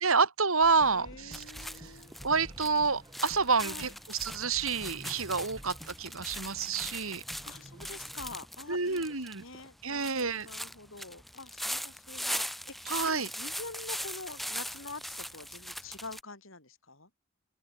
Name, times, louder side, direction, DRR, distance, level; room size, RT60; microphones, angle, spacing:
voice 1, 0.0-1.4 2.2-7.2 8.7-9.4 9.8-10.5 12.9-13.3, right 4 dB, 80° right, 3.2 m, -28 dB
sound 1, 0.6-8.4, equal, 20° right, 7.1 m, -50 dB
voice 2, 0.8-2.2 3.6-3.9 7.4-17.1, left 3 dB, 65° left, 7.8 m, -46 dB
sound 2, 1.3-16.2, equal, ahead, 3.1 m, -40 dB
open air
head